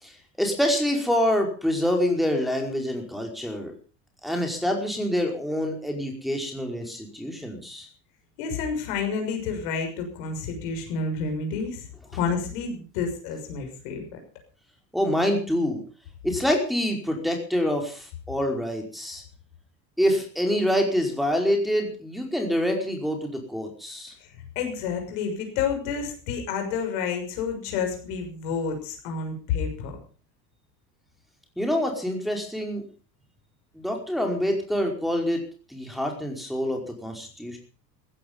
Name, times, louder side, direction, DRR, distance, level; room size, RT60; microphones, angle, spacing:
voice 1, 0.0-3.7 4.2-7.9 14.9-15.8 16.2-19.2 20.0-24.1 31.6-32.8 33.7-35.4 35.7-37.6, equal, ahead, 1 dB, 4.9 m, -26 dB
voice 2, 8.4-14.2 24.2-24.3 24.5-30.0, left 5 dB, 60° left, 4 dB, 6.5 m, -29 dB
16.0 x 15.5 x 5.4 m, 0.39 s
figure-of-eight pair, 75°, 49 cm